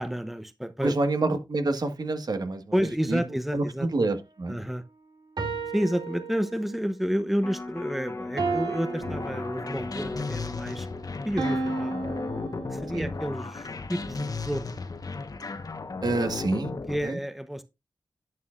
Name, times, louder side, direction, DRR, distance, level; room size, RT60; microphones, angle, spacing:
voice 1, 0.0-0.9 2.7-3.9 4.5-4.8 5.7-10.9 11.2-12.0 12.7-14.7 16.9-17.6, equal, ahead, 0.8 m, -30 dB
voice 2, 0.8-2.6 3.1-3.2 3.5-4.6 12.9-13.1 16.0-16.7 17.0-17.2, right 2 dB, 60° right, 1.6 m, -27 dB
sound 1, 5.4-6.9 8.4-10.0 11.4-13.3, right 3 dB, 80° right, 2.5 m, -33 dB
Electric guitar, 7.4-13.6 14.0-14.1, left 2 dB, 35° left, 1.4 m, -40 dB
sound 2, 9.0-17.0, left 3 dB, 55° left, 1.2 m, -35 dB
11.0 x 8.6 x 2.5 m
wide cardioid pair, 65°, 8 cm